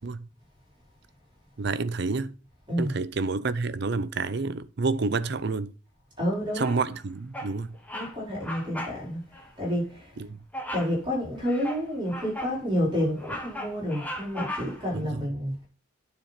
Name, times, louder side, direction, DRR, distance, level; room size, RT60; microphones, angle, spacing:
voice 1, 1.6-2.3 2.8-5.7 6.5-7.7 10.2-10.4 14.9-15.2, right 4 dB, 50° right, 0.5 m, -29 dB
voice 2, 6.2-6.7 7.9-9.2 9.6-10.1 10.7-15.5, equal, 20° right, 4.6 m, -29 dB
Bird vocalization bird call bird song, 6.6-7.0 7.3-7.6 7.8-8.1 8.4-9.0 9.3-9.5 10.5-11.0 11.4-12.6 13.0-14.9, left 1 dB, 5° left, 1.1 m, -37 dB
9.6 x 4.4 x 5.9 m
head